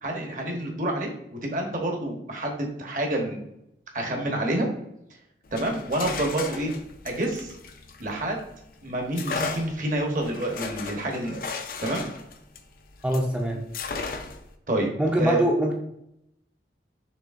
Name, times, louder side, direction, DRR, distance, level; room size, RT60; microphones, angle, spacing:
voice 1, 0.0-3.4 3.9-4.7 5.5-6.7 7.0-7.5 8.0-8.4 8.8-11.4 11.8-12.0 14.7-15.4, right 1 dB, 45° right, 1 dB, 1.0 m, -28 dB
sound 1, 5.4-8.5 9.1-13.3 13.7-14.5, left 4 dB, 55° left, 0.5 m, -35 dB
voice 2, 13.0-13.6 15.0-15.7, equal, 5° right, -1 dB, 0.5 m, -23 dB
6.4 x 3.3 x 2.5 m, 0.80 s
head